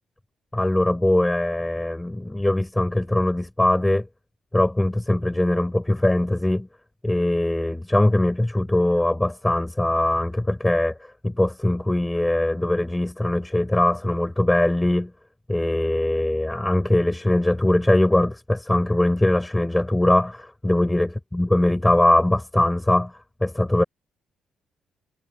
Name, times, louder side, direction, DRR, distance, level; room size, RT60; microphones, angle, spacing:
voice 1, 0.5-4.1 4.5-6.7 7.0-15.1 15.5-23.8, left 1 dB, 10° left, 5.4 m, -21 dB
cardioid pair, 90°, 0 cm